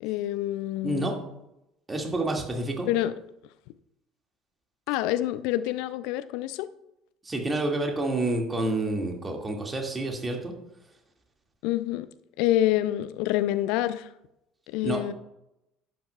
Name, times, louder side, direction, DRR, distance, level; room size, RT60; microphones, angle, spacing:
voice 1, 0.0-1.1 2.9-3.1 4.9-6.7 11.6-12.1 12.4-14.1 14.7-15.1, left 14 dB, 60° left, 0.4 m, -27 dB
voice 2, 0.8-1.2 1.9-2.9 7.3-10.5 14.8-15.1, right 2 dB, 20° right, 1.9 m, -28 dB
11.5 x 9.1 x 2.2 m
figure-of-eight pair, 60°, 0 cm